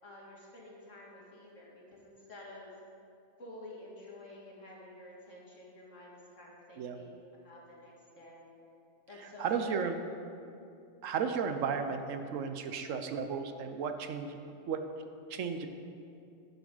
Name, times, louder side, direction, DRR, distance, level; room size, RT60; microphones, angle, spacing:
voice 1, 0.0-2.7 3.4-8.5 9.1-9.9, left 1 dB, 65° left, -4 dB, 2.5 m, -51 dB
voice 2, 9.4-10.0 11.0-14.4 14.7-14.8 15.3-15.7, right 6 dB, 75° right, 7 dB, 1.1 m, -34 dB
10.5 x 10.5 x 3.9 m, 2.6 s
omnidirectional pair, 1.4 m